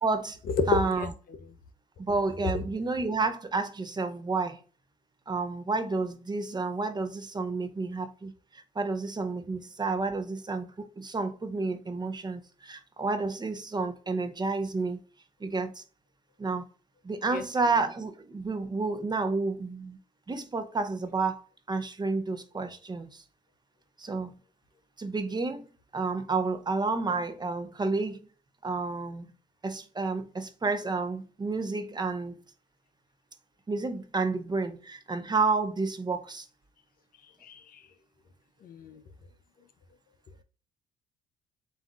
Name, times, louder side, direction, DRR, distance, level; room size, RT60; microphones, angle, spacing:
voice 1, 0.0-0.4 0.7-1.1 2.0-4.6 5.3-15.0 15.4-15.8 16.4-16.7 17.0-20.0 20.3-23.2 24.0-24.3 25.0-28.2 28.6-29.3 29.6-32.4 33.7-36.5, right 3 dB, 25° right, 0.7 m, -30 dB
voice 2, 37.4-37.8 38.6-39.0, left 4 dB, 55° left, 0.6 m, -32 dB
7.2 x 2.6 x 2.4 m
supercardioid pair, 70°, 18 cm